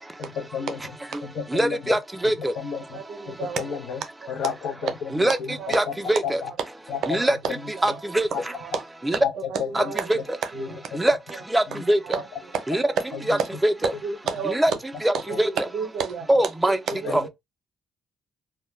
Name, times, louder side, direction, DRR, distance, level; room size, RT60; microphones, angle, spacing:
voice 1, 0.2-0.8 1.2-2.0 2.6-3.0 3.3-4.0 4.3-5.9 6.2-6.5 6.9-7.2 7.6-7.7 8.3-8.4 9.2-9.3 9.6-10.2 10.5-11.0 11.7-11.8 13.1-13.2 15.3-15.4 17.0-17.3, left 7 dB, 80° left, 0.6 m, -32 dB
voice 2, 1.1-3.4 5.1-6.4 7.1-7.4 7.7-8.5 9.0-9.2 9.7-10.4 10.9-12.2 12.7-12.8 13.3-13.9 14.4-14.7 15.0-15.7 16.3-16.8 17.1-17.2, right 1 dB, 10° right, 0.4 m, -24 dB
voice 3, 2.9-3.6 4.8-4.9 5.6-5.8 7.0-7.3 7.9-8.0 8.6-8.8 9.1-9.2 9.5-10.1 10.5-10.8 12.0-12.2 12.5-13.2 13.8-14.6 15.3-16.3 16.9-17.3, right 6 dB, 75° right, 0.6 m, -30 dB
2.1 x 2.1 x 3.0 m
cardioid pair, 90°, 0 cm